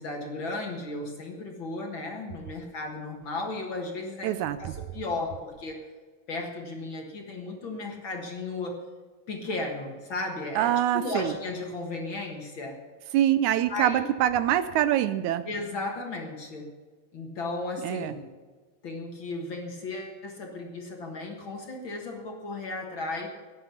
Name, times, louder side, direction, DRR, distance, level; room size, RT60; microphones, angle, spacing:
voice 1, 0.0-5.9 6.3-8.8 9.3-12.8 13.7-14.0 15.5-16.7 17.1-18.2 18.8-23.3, left 2 dB, 45° left, 1 dB, 1.9 m, -35 dB
voice 2, 4.2-4.7 10.6-11.3 13.1-15.5 17.8-18.1, right 11 dB, 80° right, 13 dB, 1.9 m, -25 dB
15.0 x 10.0 x 5.8 m, 1.4 s
omnidirectional pair, 3.6 m